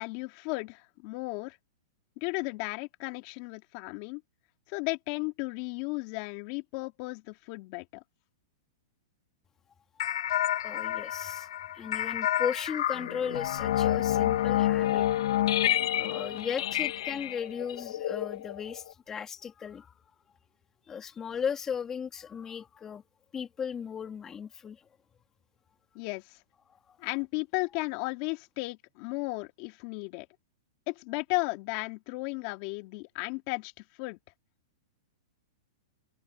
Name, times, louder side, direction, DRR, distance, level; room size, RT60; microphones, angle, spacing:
voice 1, 0.0-1.6 2.2-4.2 4.7-8.0 25.9-26.4 27.0-30.3 30.9-33.7 34.0-34.2, left 26 dB, 45° left, 2.5 m, -34 dB
sound 1, 10.0-18.9, left 12 dB, 70° left, 0.9 m, -29 dB
voice 2, 10.6-11.5 11.7-15.1 16.0-20.0 20.9-23.0 23.3-24.8 26.7-27.1, left 7 dB, 20° left, 2.4 m, -36 dB
hypercardioid pair, 140°, 3 cm